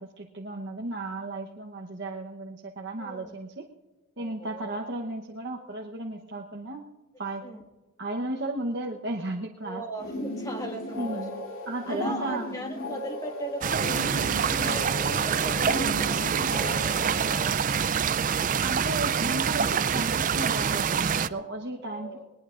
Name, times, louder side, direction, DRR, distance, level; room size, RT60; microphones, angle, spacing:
voice 1, 0.0-3.7 4.2-6.8 7.2-7.4 8.0-9.8 11.0-11.3 11.7-12.5 18.6-22.2, right 2 dB, 55° right, 0 dB, 1.0 m, -34 dB
voice 2, 3.0-3.4 4.2-4.8 7.4-7.7 9.6-11.3 11.9-18.0 21.7-22.2, equal, 15° left, 2 dB, 1.8 m, -39 dB
sound 1, 10.0-17.3, left 1 dB, 80° left, 2.6 m, -36 dB
sound 2, 13.6-21.3, right 7 dB, 40° right, 0.4 m, -26 dB
20.0 x 20.0 x 2.5 m, 1.2 s
head